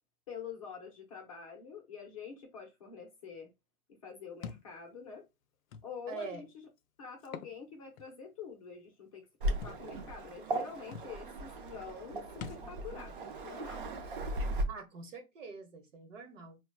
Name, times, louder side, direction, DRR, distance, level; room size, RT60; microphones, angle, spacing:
voice 1, 0.3-3.5 4.0-5.3 5.8-6.5 7.0-13.1 13.4-13.8, left 6 dB, 25° left, 0.6 m, -46 dB
Thump thud, 4.4-4.7 5.7-5.9 7.2-7.6 8.0-8.1 9.6-9.8 10.6-10.7 10.9-11.1 12.4-12.7, left 7 dB, 65° left, 0.5 m, -44 dB
voice 2, 6.1-6.4 14.7-16.6, right 5 dB, 60° right, 1.0 m, -45 dB
Waves surf, 9.4-14.6, right 1 dB, 40° right, 0.5 m, -37 dB
4.0 x 2.2 x 2.2 m
figure-of-eight pair, 130°, 44 cm